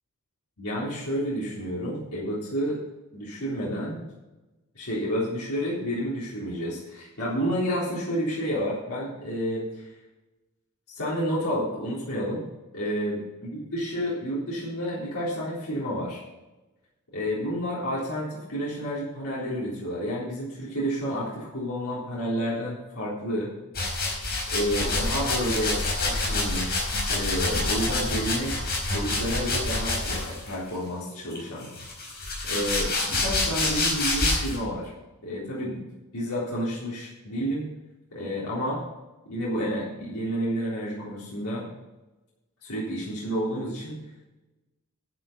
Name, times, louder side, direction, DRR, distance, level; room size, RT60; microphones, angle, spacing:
voice 1, 0.6-2.8 3.1-4.0 4.8-9.9 10.9-12.5 12.7-13.2 13.5-16.2 17.1-23.5 24.5-28.6 28.9-31.7 32.5-34.9 35.2-35.9 36.1-37.6 38.1-38.8 39.3-41.7 42.6-44.0, equal, 75° left, -6 dB, 3.8 m, -30 dB
sound 1, 23.7-30.5 31.3-34.6, left 2 dB, 45° left, 4.7 m, -27 dB
11.0 x 9.7 x 5.3 m, 1.1 s
head